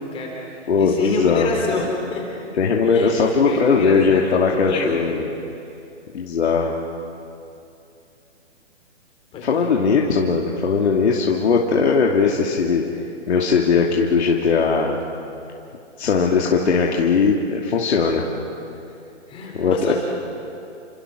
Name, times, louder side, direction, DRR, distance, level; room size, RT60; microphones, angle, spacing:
voice 1, 0.0-2.2 2.8-3.1 3.4-5.2 9.3-9.7 19.3-19.9, left 3 dB, 15° left, 0 dB, 3.7 m, -28 dB
voice 2, 0.7-1.5 2.6-5.3 6.1-6.7 9.4-12.8 13.3-15.0 16.0-18.2 19.5-19.9, left 5 dB, 65° left, -1 dB, 2.6 m, -19 dB
29.5 x 26.5 x 6.5 m, 2.7 s
hypercardioid pair, 155°, 37 cm